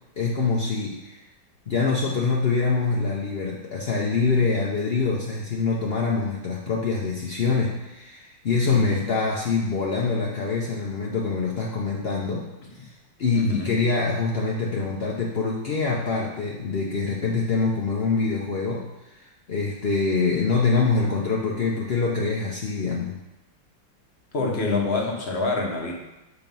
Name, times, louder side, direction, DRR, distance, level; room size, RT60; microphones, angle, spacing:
voice 1, 0.2-1.2 1.7-12.5 12.7-12.9 13.2-23.2, left 4 dB, 75° left, -3 dB, 0.5 m, -25 dB
voice 2, 8.7-9.0 12.6-12.7 13.3-13.8 24.3-25.9, left 3 dB, 40° left, -1 dB, 1.1 m, -26 dB
8.2 x 2.9 x 5.2 m, 0.99 s
omnidirectional pair, 2.1 m